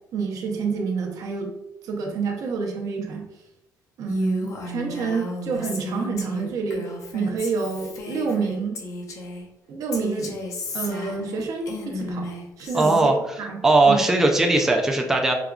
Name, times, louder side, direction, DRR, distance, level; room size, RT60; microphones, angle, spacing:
voice 1, 0.1-1.5 1.8-3.2 4.0-8.8 9.7-10.3 10.7-12.3 12.6-13.1 13.4-14.0, right 5 dB, 60° right, 2 dB, 0.7 m, -28 dB
Female speech woman speaking, 4.1-9.5 9.9-13.0, left 2 dB, 55° left, 0.6 m, -34 dB
voice 2, 12.7-13.1 13.6-15.3, right 2 dB, 5° right, 2 dB, 0.3 m, -18 dB
4.9 x 2.2 x 2.3 m, 0.93 s
cardioid pair, 150°, 7 cm